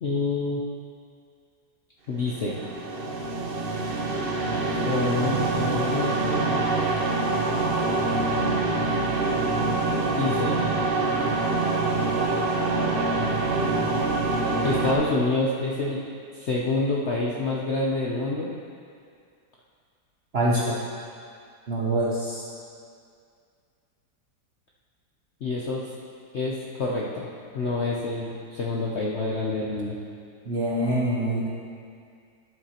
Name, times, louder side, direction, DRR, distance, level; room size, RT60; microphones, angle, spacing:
voice 1, 0.0-0.6 2.1-2.6 4.7-6.6 10.2-10.6 14.6-16.0 16.3-18.5 25.4-25.8 26.3-27.3 27.5-30.0, left 2 dB, 60° left, -4 dB, 0.7 m, -27 dB
sound 1, 2.3-14.9, right 3 dB, 85° right, 0.5 m, -25 dB
voice 2, 20.3-20.8 21.7-22.4 30.4-31.5, right 1 dB, 50° right, -5 dB, 0.7 m, -25 dB
11.0 x 8.0 x 2.9 m, 2.3 s
omnidirectional pair, 2.0 m